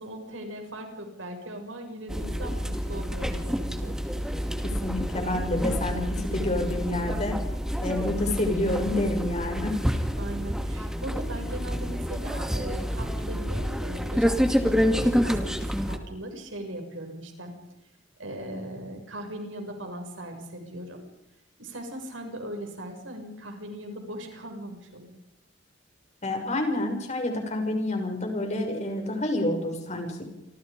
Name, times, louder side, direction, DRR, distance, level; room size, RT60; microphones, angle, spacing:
voice 1, 0.0-4.0 10.2-15.6 15.9-17.5 18.2-21.0 21.6-25.1, right 1 dB, 90° right, 4 dB, 6.8 m, -39 dB
sound 1, 2.1-16.0, equal, 5° right, 2.2 m, -28 dB
voice 2, 4.8-7.4 7.8-9.7 26.2-30.2, left 1 dB, 35° left, 4 dB, 6.5 m, -28 dB
28.5 x 25.5 x 5.3 m, 0.89 s
head